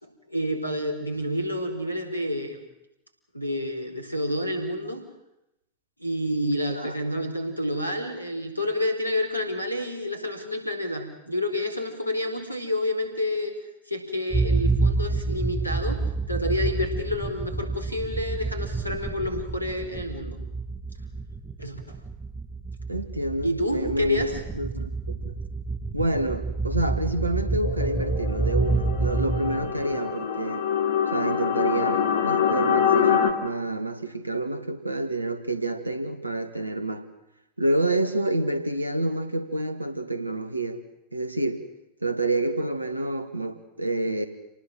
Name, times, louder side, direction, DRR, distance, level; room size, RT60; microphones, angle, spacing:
voice 1, 0.0-2.6 3.3-5.0 6.0-13.5 13.9-16.0 16.3-20.4 21.6-22.0 23.4-24.4, left 1 dB, 85° left, 7 dB, 4.4 m, -29 dB
sound 1, 14.3-30.0, right 3 dB, 15° right, 1.8 m, -28 dB
voice 2, 22.9-25.3 25.9-30.6 31.1-37.0 37.6-40.8 41.1-41.6 42.0-44.3, right 1 dB, 85° right, 9 dB, 2.3 m, -28 dB
sound 2, 27.6-33.3, left 8 dB, 60° left, 3.0 m, -25 dB
28.5 x 19.0 x 7.6 m, 0.87 s
figure-of-eight pair, 90°, 0 cm